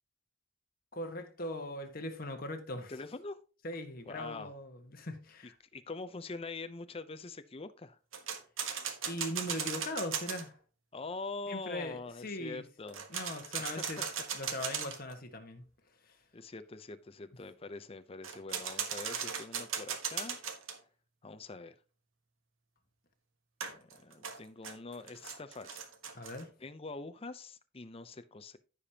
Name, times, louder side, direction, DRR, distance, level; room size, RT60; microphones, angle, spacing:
voice 1, 0.9-2.9 3.6-5.6 9.0-10.5 11.5-12.6 13.1-14.0 14.3-15.6 16.0-16.2 26.1-26.5, left 1 dB, 50° left, 1.5 m, -40 dB
voice 2, 2.9-3.4 4.1-4.5 5.7-8.0 10.9-13.1 13.8-13.9 14.4-14.5 16.3-20.4 21.2-21.7 23.7-25.8 26.6-28.6, left 3 dB, 30° left, 0.6 m, -44 dB
sound 1, 8.1-10.4 12.9-15.1 18.2-20.8 23.6-26.4, right 7 dB, 90° right, 1.3 m, -38 dB
15.0 x 5.1 x 2.9 m
head